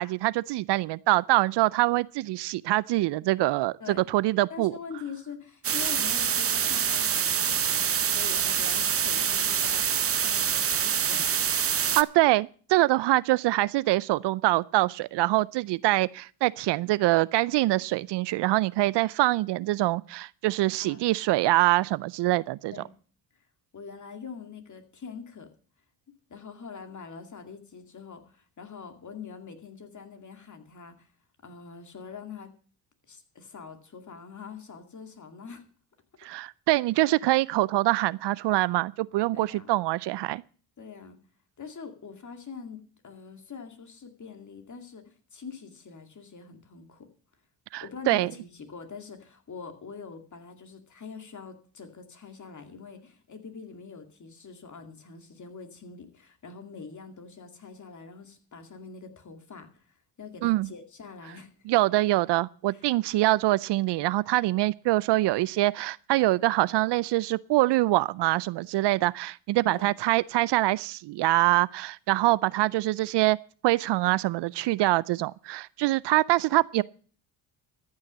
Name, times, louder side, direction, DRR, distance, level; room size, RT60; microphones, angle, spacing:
voice 1, 0.0-3.7 4.1-4.7 12.0-22.7 36.2-40.4 47.7-48.3 60.4-60.7 61.7-73.4 73.6-76.8, right 18 dB, 70° right, 0.5 m, -24 dB
voice 2, 4.5-10.0 10.2-11.3 20.8-21.1 22.7-22.9 23.7-25.5 26.3-31.1 31.4-32.5 33.1-35.6 39.3-39.7 40.8-41.2 41.6-47.1 47.8-61.5 62.7-63.1 69.7-69.9, left 5 dB, 40° left, 2.4 m, -44 dB
sound 1, 5.6-12.0, right 8 dB, 30° right, 0.7 m, -26 dB
14.0 x 6.4 x 7.4 m
supercardioid pair, 65°, 44 cm